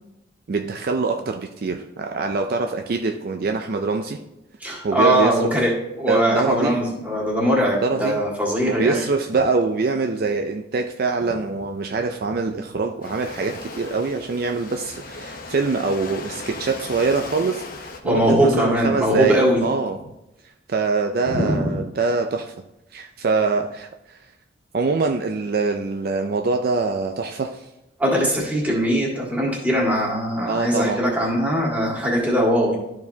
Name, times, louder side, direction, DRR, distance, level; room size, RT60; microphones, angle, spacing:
voice 1, 0.5-4.2 4.8-5.5 6.1-6.8 7.8-8.2 8.7-20.0 20.7-22.5 22.9-24.2 24.7-27.7 30.5-31.0, right 4 dB, 50° right, 5 dB, 0.4 m, -24 dB
voice 2, 4.6-5.7 6.0-9.0 18.0-19.6 21.2-21.8 28.0-32.8, equal, 10° right, -4 dB, 1.9 m, -21 dB
Waves surf, 13.0-18.0, left 3 dB, 50° left, 0.8 m, -37 dB
12.5 x 4.7 x 2.8 m, 0.92 s
head